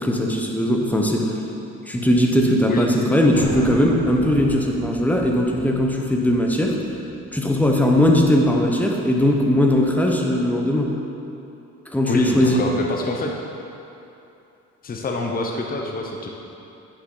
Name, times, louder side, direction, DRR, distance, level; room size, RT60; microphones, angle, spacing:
voice 1, 0.0-1.4 1.9-6.7 7.3-10.9 11.9-12.6, left 1 dB, 5° left, 0 dB, 1.0 m, -19 dB
sound 1, 3.3-8.6, left 2 dB, 75° left, 1.6 m, -37 dB
voice 2, 12.1-13.3 14.8-16.3, left 3 dB, 30° left, 0 dB, 0.9 m, -26 dB
9.1 x 6.4 x 3.9 m, 2.8 s
cardioid pair, 90°, 30 cm